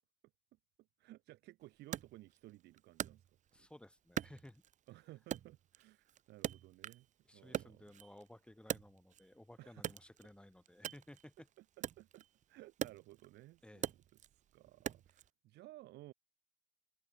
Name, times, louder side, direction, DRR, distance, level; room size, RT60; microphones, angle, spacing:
voice 1, 1.0-3.4 4.9-7.1 7.3-7.9 9.6-9.9 11.6-14.0 14.3-16.1, right 17 dB, 80° right, 3.4 m, -57 dB
Wood, 1.9-3.7 4.2-4.9 5.3-7.1 7.4-9.3 9.8-15.3, right 10 dB, 45° right, 0.7 m, -44 dB
voice 2, 3.5-4.6 7.3-11.5 13.6-13.9, left 1 dB, 5° left, 6.7 m, -57 dB
cardioid pair, 110°, 17 cm